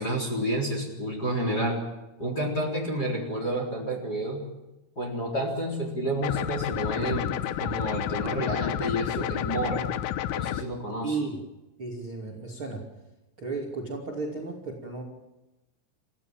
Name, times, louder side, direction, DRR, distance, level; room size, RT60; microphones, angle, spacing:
voice 1, 0.0-1.8 2.2-4.4 5.0-9.8 10.3-11.2, right 1 dB, 20° left, 1 dB, 3.8 m, -30 dB
sound 1, 6.2-10.6, left 12 dB, 85° left, 3.6 m, -30 dB
voice 2, 11.0-11.4 11.8-12.8 13.4-15.0, right 3 dB, 30° right, -1 dB, 2.9 m, -33 dB
30.0 x 15.5 x 7.4 m, 0.98 s
omnidirectional pair, 5.7 m